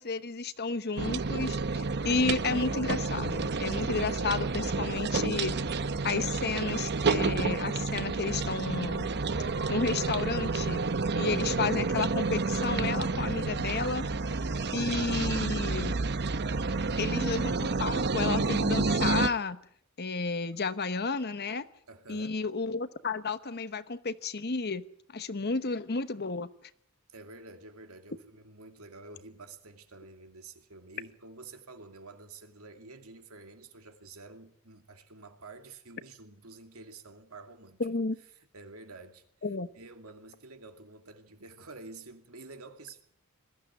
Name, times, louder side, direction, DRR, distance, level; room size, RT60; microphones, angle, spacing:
voice 1, 0.0-5.6 6.0-9.1 9.7-10.8 11.1-14.1 14.7-16.0 17.0-19.6 20.0-21.6 22.1-24.8 25.1-26.5 37.8-38.2 39.4-39.7, left 4 dB, 45° left, 1.0 m, -32 dB
sound 1, 1.0-19.3, right 3 dB, 50° right, 0.9 m, -30 dB
voice 2, 21.9-22.4 27.1-37.8 38.5-39.2 39.7-43.0, right 3 dB, 75° right, 2.5 m, -49 dB
21.0 x 14.5 x 9.5 m
head